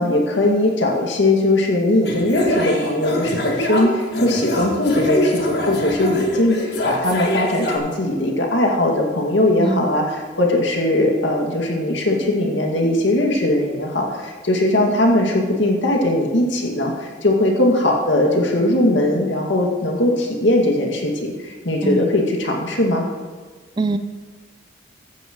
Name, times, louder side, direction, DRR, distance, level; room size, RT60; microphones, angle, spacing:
voice 1, 0.0-23.0, left 1 dB, 90° left, 0 dB, 2.2 m, -19 dB
sound 1, 2.0-7.8, left 1 dB, 60° left, 1.7 m, -24 dB
voice 2, 9.6-9.9 21.8-22.2 23.8-24.0, right 2 dB, 25° right, 11 dB, 0.4 m, -23 dB
14.5 x 9.8 x 3.1 m, 1.5 s
head